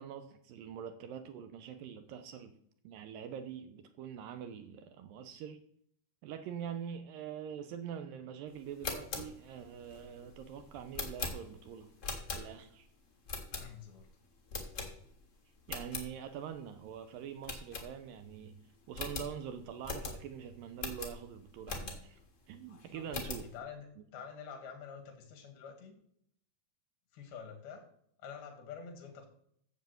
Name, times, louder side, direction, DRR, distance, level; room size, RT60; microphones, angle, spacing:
voice 1, 0.0-2.6 2.8-5.6 6.2-11.9 12.3-12.9 15.7-18.6 18.9-22.2 22.5-23.5 24.0-24.1, right 8 dB, 75° right, 2.3 m, -44 dB
sound 1, 8.6-12.8 13.3-14.0 14.5-15.3 15.6-16.1 16.5-16.6 16.9-17.0 17.4-18.3 18.6-18.7 18.9-22.2 22.7-23.5, left 4 dB, 55° left, 0.8 m, -41 dB
voice 2, 13.5-14.1 22.9-23.9 24.1-26.0 27.1-27.9 28.2-29.3, left 6 dB, 75° left, 3.9 m, -47 dB
9.0 x 7.4 x 7.8 m
omnidirectional pair, 4.4 m